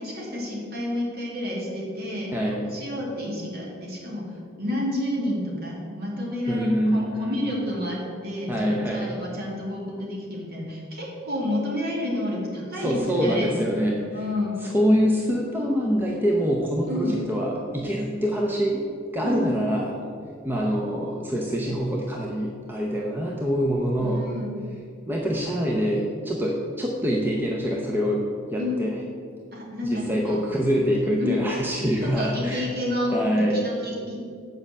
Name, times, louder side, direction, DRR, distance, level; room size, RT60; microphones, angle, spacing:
voice 1, 0.0-2.3 2.7-13.5 14.1-14.6 16.9-17.2 19.2-19.5 24.0-24.5 28.6-28.8 29.5-30.4 31.2-31.4 32.0-34.1, left 1 dB, 50° right, -3 dB, 2.2 m, -30 dB
voice 2, 2.3-2.7 6.5-7.4 8.5-9.1 12.8-14.0 14.6-18.8 19.1-19.9 20.4-24.2 25.1-28.2 28.5-28.9 29.9-32.6 33.1-33.6, equal, 10° right, -2 dB, 0.7 m, -25 dB
7.6 x 5.4 x 7.3 m, 2.3 s
head